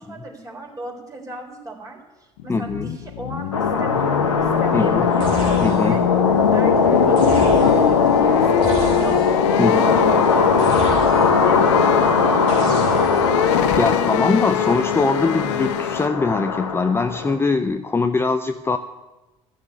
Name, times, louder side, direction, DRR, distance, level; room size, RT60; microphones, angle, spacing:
voice 1, 0.0-5.4 5.8-10.5 11.0-14.1, right 2 dB, 20° right, 0 dB, 4.1 m, -37 dB
sound 1, 2.4-16.1, left 13 dB, 70° left, 0.6 m, -25 dB
voice 2, 2.5-2.9 4.7-5.1 5.6-6.0 9.6-9.8 13.5-18.8, left 4 dB, 15° left, 9 dB, 0.6 m, -22 dB
sound 2, 3.5-17.3, left 4 dB, 90° left, 1.2 m, -19 dB
sound 3, 5.2-6.1 7.2-8.0 8.6-9.5 10.6-11.5 12.5-13.4, right 3 dB, 70° right, 3.3 m, -31 dB
13.0 x 6.8 x 9.7 m, 1.1 s
hypercardioid pair, 65°, 15 cm